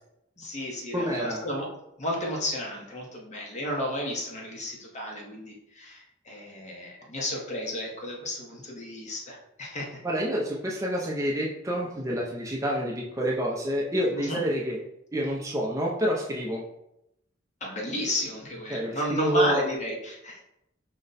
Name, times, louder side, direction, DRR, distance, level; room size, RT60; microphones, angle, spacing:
voice 1, 0.4-1.7 2.0-10.0 14.1-14.4 17.6-20.4, left 1 dB, 35° left, -2 dB, 0.9 m, -32 dB
voice 2, 0.9-1.4 10.0-14.8 15.1-16.6 18.7-19.6, equal, 15° right, -3 dB, 0.5 m, -28 dB
5.0 x 2.2 x 3.9 m, 0.84 s
head